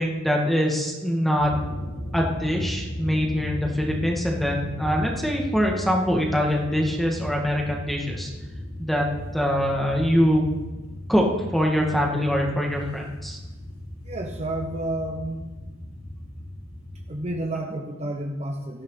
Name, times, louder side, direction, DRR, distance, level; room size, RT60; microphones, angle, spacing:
voice 1, 0.0-1.5 2.1-8.3 8.8-9.1 9.3-10.5 11.1-11.2 11.5-13.4, equal, ahead, -1 dB, 2.1 m, -23 dB
sound 1, 1.4-17.3, left 1 dB, 85° left, 4.9 m, -36 dB
voice 2, 14.0-15.4 17.1-18.8, right 1 dB, 30° right, 3 dB, 1.1 m, -30 dB
17.5 x 13.5 x 4.1 m, 1.1 s
head